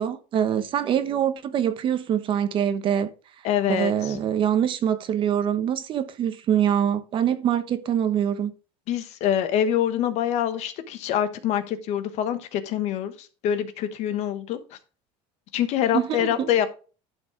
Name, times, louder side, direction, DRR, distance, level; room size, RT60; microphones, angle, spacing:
voice 1, 0.0-3.1 3.7-8.5 15.9-16.5, right 9 dB, 35° right, 1.0 m, -24 dB
voice 2, 3.4-4.2 8.9-14.6 15.5-16.7, left 10 dB, 55° left, 1.3 m, -25 dB
11.5 x 4.7 x 4.8 m
cardioid pair, 145°, 14 cm